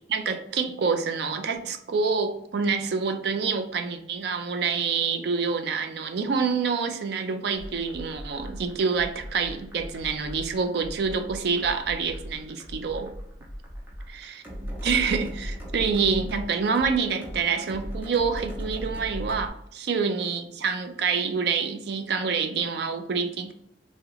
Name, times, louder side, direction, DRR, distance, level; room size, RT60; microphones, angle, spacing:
voice 1, 0.1-13.1 14.1-14.4 14.8-23.5, right 5 dB, 65° right, 7 dB, 0.4 m, -27 dB
sound 1, 7.5-19.5, equal, 10° right, 0.5 m, -38 dB
3.5 x 2.1 x 3.0 m, 0.75 s
head